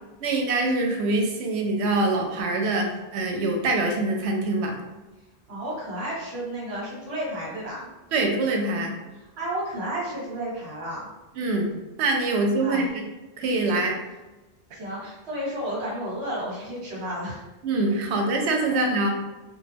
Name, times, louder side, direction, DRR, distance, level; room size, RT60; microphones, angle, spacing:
voice 1, 0.2-2.9 3.1-4.7 8.1-8.9 11.4-11.7 12.0-13.0 13.4-14.0 17.6-19.1, right 2 dB, 90° right, 2 dB, 0.8 m, -24 dB
voice 2, 5.5-7.9 9.4-11.1 12.6-12.9 14.7-17.4 18.6-18.7, right 1 dB, 70° right, -5 dB, 1.2 m, -32 dB
2.3 x 2.2 x 3.3 m, 1.1 s
omnidirectional pair, 1.1 m